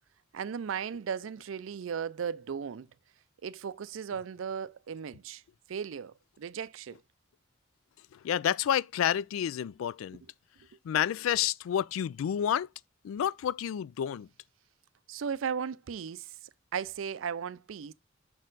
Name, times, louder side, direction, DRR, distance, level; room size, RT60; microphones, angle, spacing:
voice 1, 0.3-2.9 3.4-5.4 5.7-7.0 15.1-17.9, right 7 dB, 75° right, 0.4 m, -36 dB
voice 2, 8.1-10.2 10.8-12.7 13.0-14.3, left 9 dB, 85° left, 0.3 m, -29 dB
6.0 x 4.3 x 3.9 m
head